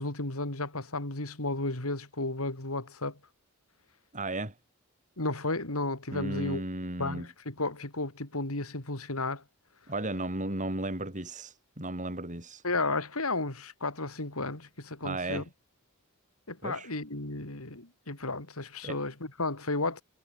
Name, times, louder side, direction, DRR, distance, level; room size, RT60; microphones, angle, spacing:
voice 1, 0.0-3.2 5.2-6.6 7.0-9.4 12.6-15.4 16.5-20.0, left 2 dB, 80° left, 4.1 m, -33 dB
voice 2, 4.1-4.5 6.1-7.3 9.9-12.6 15.0-15.5 16.6-16.9 18.8-19.0, right 2 dB, 35° right, 7.0 m, -35 dB
head